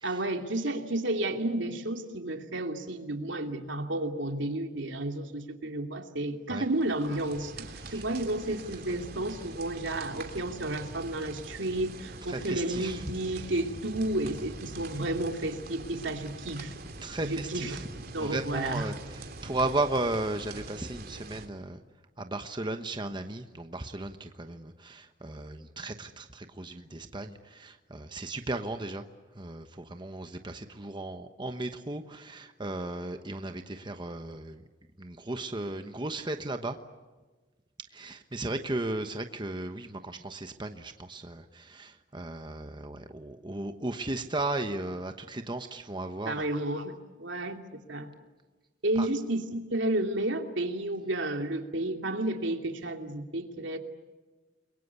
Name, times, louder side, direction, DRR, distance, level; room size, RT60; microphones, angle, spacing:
voice 1, 0.0-16.7 17.2-18.9 46.3-47.6 47.9-48.1 48.8-53.8, right 1 dB, 80° right, 4 dB, 2.8 m, -32 dB
sound 1, 6.7-21.5, right 2 dB, 55° right, 2.9 m, -44 dB
voice 2, 12.3-13.0 17.0-17.8 18.2-21.8 22.2-29.0 29.3-34.6 35.0-36.8 37.9-46.4 49.0-49.1, right 2 dB, 25° right, 7 dB, 1.1 m, -35 dB
29.5 x 22.5 x 8.3 m, 1.3 s
head